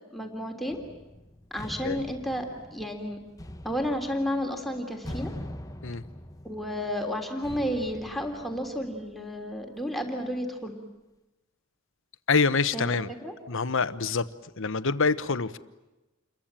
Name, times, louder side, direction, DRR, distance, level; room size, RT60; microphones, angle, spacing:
voice 1, 0.1-0.8 1.5-3.2 3.6-5.3 6.4-10.8 12.7-13.3, equal, ahead, 2 dB, 3.3 m, -32 dB
sound 1, 0.7-9.4, left 1 dB, 15° left, 1.1 m, -43 dB
voice 2, 12.3-13.1 13.5-14.3 14.6-15.6, left 4 dB, 65° left, 12 dB, 1.1 m, -26 dB
29.0 x 22.5 x 8.9 m, 1.0 s
head